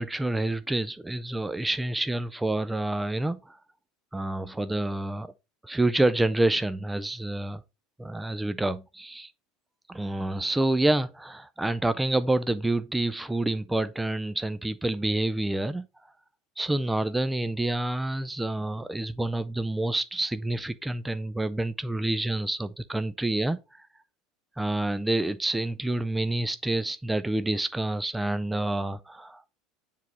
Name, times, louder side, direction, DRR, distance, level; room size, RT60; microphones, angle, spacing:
voice 1, 0.0-3.6 4.1-5.3 5.6-7.6 8.0-9.3 9.9-15.8 16.6-23.9 24.6-29.5, right 1 dB, 10° right, 0.4 m, -28 dB
7.5 x 3.5 x 4.2 m
figure-of-eight pair, 75°, 0 cm